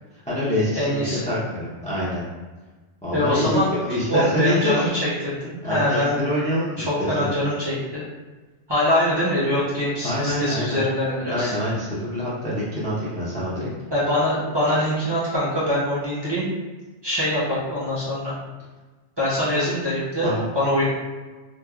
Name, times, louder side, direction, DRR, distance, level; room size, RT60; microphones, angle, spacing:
voice 1, 0.1-2.2 3.0-4.9 5.6-7.3 10.0-10.8 11.3-13.7 20.2-20.4, left 1 dB, 10° left, -9 dB, 0.5 m, -26 dB
voice 2, 0.7-1.3 3.1-3.7 4.1-6.2 6.8-8.0 8.7-11.5 13.9-16.5 17.0-18.3 19.2-20.9, left 1 dB, 25° right, -9 dB, 0.7 m, -23 dB
3.1 x 2.2 x 2.3 m, 1.3 s
omnidirectional pair, 1.1 m